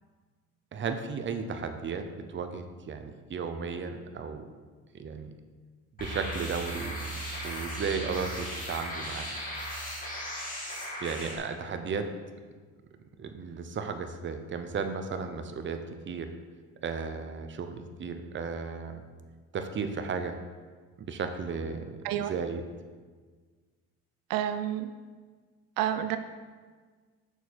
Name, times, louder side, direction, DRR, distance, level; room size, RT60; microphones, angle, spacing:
voice 1, 0.7-4.5 4.9-5.3 6.0-9.3 11.0-12.1 13.2-15.8 16.1-16.3 16.8-19.0 19.5-20.3 21.0-22.6, right 5 dB, 35° right, 7 dB, 0.7 m, -35 dB
sound 1, 6.0-11.4, equal, 25° left, 2.5 m, -37 dB
voice 2, 24.3-24.9 25.8-26.2, right 11 dB, 85° right, 10 dB, 0.5 m, -29 dB
7.0 x 6.4 x 4.3 m, 1.5 s
cardioid pair, 95°, 33 cm